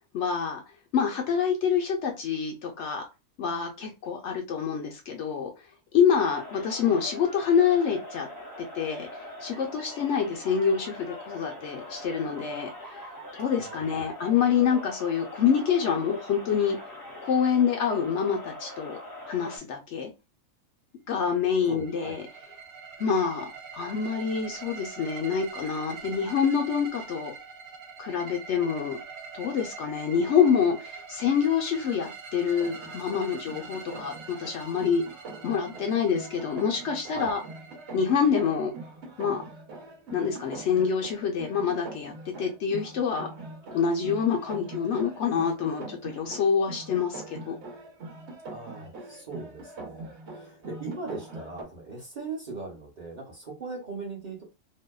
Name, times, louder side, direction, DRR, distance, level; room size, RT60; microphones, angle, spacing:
voice 1, 0.1-0.6 0.9-3.0 3.4-5.5 5.9-8.3 8.6-9.1 9.4-12.7 13.3-16.8 17.2-19.0 19.3-20.1 21.1-22.2 23.0-27.3 28.0-29.0 29.3-35.0 35.4-37.4 37.9-38.7 39.2-39.4 40.1-43.3 43.7-47.5, left 7 dB, 65° left, 2 dB, 0.8 m, -26 dB
sound 1, 6.1-19.6, left 1 dB, 20° left, 0.6 m, -42 dB
voice 2, 13.5-14.1 21.6-22.2 37.0-37.4 48.5-54.4, right 3 dB, 40° right, -3 dB, 0.7 m, -39 dB
sound 2, 21.3-39.1, right 5 dB, 80° right, 0.4 m, -44 dB
sound 3, 32.5-51.6, right 2 dB, 60° right, 1.0 m, -43 dB
2.6 x 2.1 x 2.2 m, 0.27 s
omnidirectional pair, 1.4 m